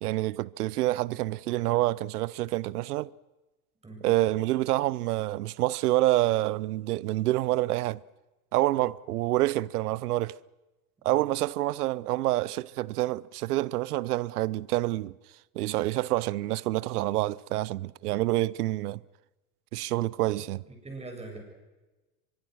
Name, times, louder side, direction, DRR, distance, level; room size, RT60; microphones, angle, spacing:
voice 1, 0.0-3.1 4.0-8.0 8.5-10.4 11.0-15.1 15.5-19.0 19.7-20.6, right 16 dB, 90° right, 0.7 m, -27 dB
voice 2, 20.3-21.4, right 3 dB, 15° right, 7.2 m, -43 dB
24.0 x 22.5 x 6.3 m
supercardioid pair, 120°, 44 cm